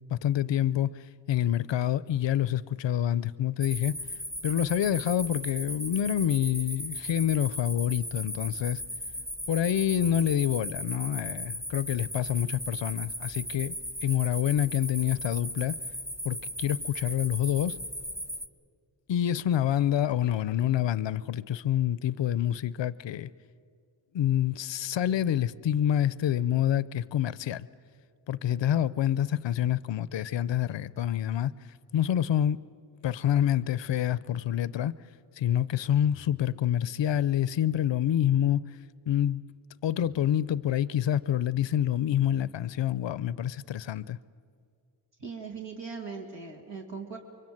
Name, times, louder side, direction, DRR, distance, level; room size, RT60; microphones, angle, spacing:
voice 1, 0.1-4.0 4.4-8.8 9.5-13.8 14.0-15.8 16.2-17.8 19.1-23.3 24.1-27.7 28.3-31.5 31.9-32.6 33.0-34.9 35.4-38.6 39.1-39.4 39.8-44.2, left 10 dB, 70° left, 0.6 m, -27 dB
sound 1, 3.6-18.5, equal, 5° right, 1.2 m, -37 dB
voice 2, 45.2-47.2, right 5 dB, 70° right, 2.8 m, -39 dB
25.0 x 22.5 x 7.8 m
cardioid pair, 50°, 45 cm